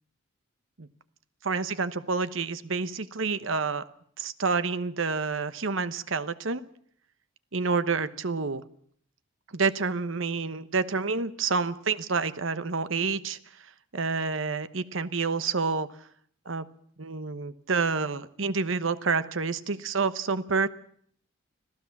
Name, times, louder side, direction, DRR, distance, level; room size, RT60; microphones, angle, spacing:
voice 1, 1.4-3.8 4.2-6.6 7.5-8.6 9.5-15.9 16.5-16.6 17.0-20.7, right 4 dB, 70° right, 13 dB, 1.0 m, -28 dB
26.0 x 15.5 x 7.2 m, 0.62 s
head